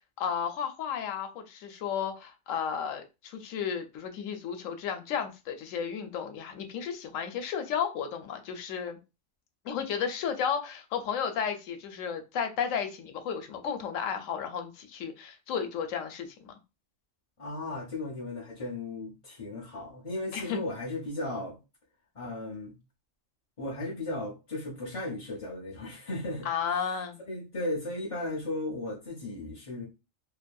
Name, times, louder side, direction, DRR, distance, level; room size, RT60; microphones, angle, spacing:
voice 1, 0.2-9.0 9.6-16.6 20.3-20.6 26.4-27.2, left 7 dB, 85° left, 1.0 m, -33 dB
voice 2, 17.4-21.6 22.1-22.7 23.6-26.5 26.8-29.9, left 2 dB, 40° left, 0.4 m, -36 dB
2.7 x 2.6 x 2.2 m
omnidirectional pair, 1.3 m